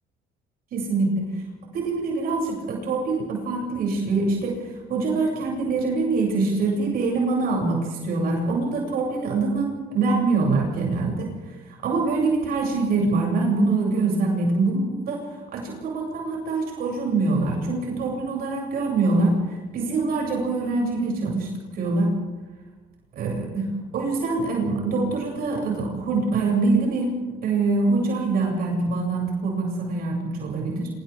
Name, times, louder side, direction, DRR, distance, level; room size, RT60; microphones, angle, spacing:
voice 1, 0.7-1.3 1.7-11.3 11.7-15.2 15.5-22.1 23.2-27.2 27.4-30.9, right 3 dB, 65° right, -1 dB, 7.4 m, -24 dB
30.0 x 27.0 x 3.7 m, 1.3 s
cardioid pair, 110°, 17 cm